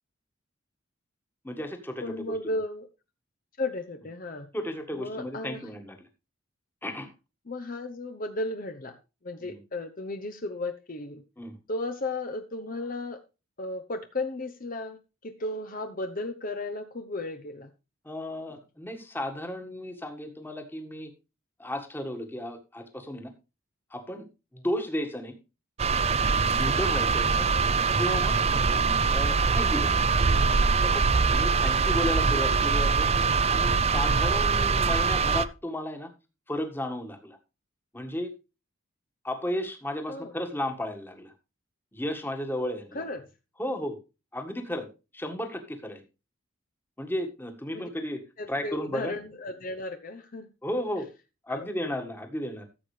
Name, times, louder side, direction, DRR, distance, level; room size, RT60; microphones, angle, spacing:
voice 1, 1.4-2.4 4.5-6.1 6.8-7.1 9.4-9.6 11.4-11.6 18.0-21.1 21.6-23.3 23.9-24.3 24.5-25.3 26.5-27.5 28.0-28.4 29.1-30.1 30.8-33.1 33.5-36.1 36.5-37.4 37.9-38.3 39.2-41.3 41.9-43.0 43.6-44.0 44.3-44.9 45.1-46.0 47.0-48.2 48.5-49.1 50.6-51.1 51.5-52.6, left 1 dB, 10° left, 5 dB, 1.7 m, -34 dB
voice 2, 2.0-2.9 3.6-4.5 4.9-5.7 7.5-9.0 9.2-11.2 11.7-13.2 13.6-17.7 28.7-29.0 40.1-40.3 42.9-43.3 47.7-47.9 48.4-50.5 51.5-51.7, left 2 dB, 45° left, 6 dB, 0.9 m, -34 dB
sound 1, 25.8-35.4, right 4 dB, 30° right, 0.5 m, -23 dB
14.0 x 7.7 x 3.3 m, 0.29 s
head